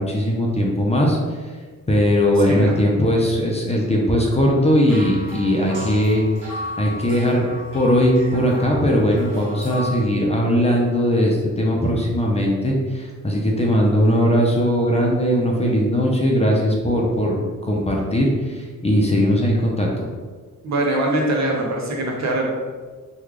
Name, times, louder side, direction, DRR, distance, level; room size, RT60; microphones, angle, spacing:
voice 1, 0.0-1.5 1.9-7.5 7.7-19.9, equal, 20° left, -2 dB, 0.5 m, -19 dB
sound 1, 4.9-10.0, left 1 dB, 80° right, 1.1 m, -34 dB
voice 2, 20.6-22.5, right 1 dB, 60° right, -1 dB, 0.7 m, -22 dB
3.1 x 2.3 x 3.6 m, 1.4 s
wide cardioid pair, 120°, 31 cm